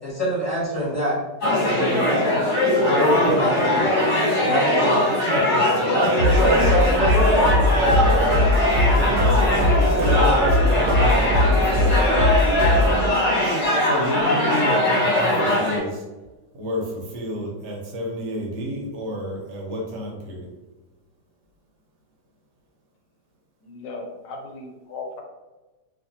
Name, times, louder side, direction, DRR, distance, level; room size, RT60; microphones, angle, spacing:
voice 1, 0.0-2.4 2.8-5.0 5.9-8.5, right 1 dB, 10° left, -9 dB, 1.2 m, -26 dB
sound 1, 1.4-15.8, left 1 dB, 45° left, 1.3 m, -21 dB
voice 2, 3.0-3.3 5.1-5.9 7.7-8.4 8.8-12.0 12.6-13.1 13.8-16.0 16.5-20.5, equal, 75° right, -2 dB, 1.3 m, -30 dB
sound 2, 6.2-13.0, left 1 dB, 60° right, 1.1 m, -20 dB
voice 3, 23.6-25.2, left 3 dB, 80° left, 2 dB, 1.2 m, -36 dB
2.9 x 2.5 x 2.6 m, 1.1 s
omnidirectional pair, 1.9 m